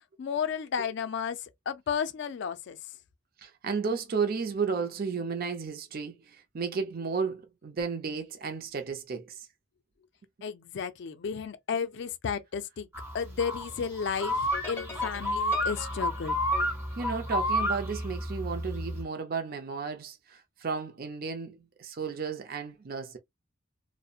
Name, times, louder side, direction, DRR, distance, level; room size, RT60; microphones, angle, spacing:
voice 1, 0.0-2.8 10.4-12.9 13.1-16.4, left 6 dB, 55° left, 0.3 m, -33 dB
voice 2, 3.4-9.5 17.0-23.2, right 5 dB, 45° right, 0.4 m, -33 dB
sound 1, 12.9-19.0, equal, 10° right, 0.8 m, -31 dB
sound 2, 14.5-17.9, left 4 dB, 10° left, 1.0 m, -44 dB
2.7 x 2.0 x 2.3 m
head